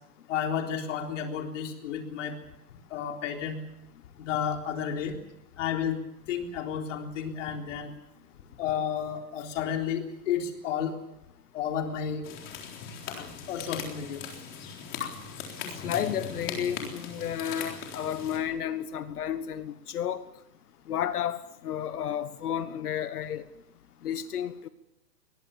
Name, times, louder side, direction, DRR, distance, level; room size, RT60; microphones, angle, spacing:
voice 1, 0.3-2.4 2.9-3.6 4.2-5.2 5.6-6.0 6.3-7.9 8.6-11.0 11.5-12.3 13.1-14.2 15.0-15.1, left 8 dB, 45° left, 3 dB, 3.9 m, -32 dB
sound 1, 12.2-18.4, left 6 dB, 25° left, 3.9 m, -39 dB
voice 2, 15.8-20.2 20.9-23.4 24.0-24.7, left 9 dB, 60° left, 13 dB, 1.4 m, -32 dB
23.5 x 20.0 x 7.2 m, 0.88 s
hypercardioid pair, 155°, 50 cm